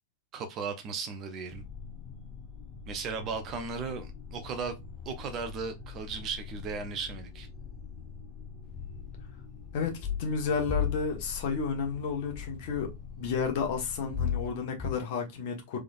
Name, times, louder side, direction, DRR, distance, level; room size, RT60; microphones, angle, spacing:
voice 1, 0.3-1.6 2.9-4.8 5.0-7.5, right 5 dB, 35° right, 0.8 m, -36 dB
sound 1, 1.5-14.2, left 6 dB, 10° left, 1.1 m, -45 dB
sound 2, 8.7-9.1 10.0-10.3 10.7-11.1 12.3-13.2 14.1-14.9, left 7 dB, 35° left, 0.7 m, -33 dB
voice 2, 9.7-15.8, left 5 dB, 50° left, 1.3 m, -32 dB
3.7 x 3.3 x 2.5 m
figure-of-eight pair, 90°, 0 cm